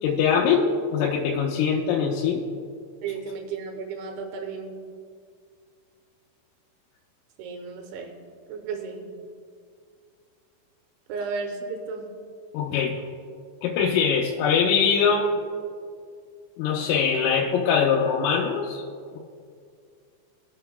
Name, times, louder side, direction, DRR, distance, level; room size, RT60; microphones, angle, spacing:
voice 1, 0.0-2.4 12.5-13.0 13.6-15.3 16.6-18.8, left 6 dB, 85° left, -3 dB, 3.3 m, -22 dB
voice 2, 3.0-4.8 7.4-8.1 8.5-9.1 11.1-12.1, right 5 dB, 80° right, 4 dB, 3.1 m, -33 dB
21.0 x 7.8 x 2.2 m, 2.2 s
omnidirectional pair, 5.5 m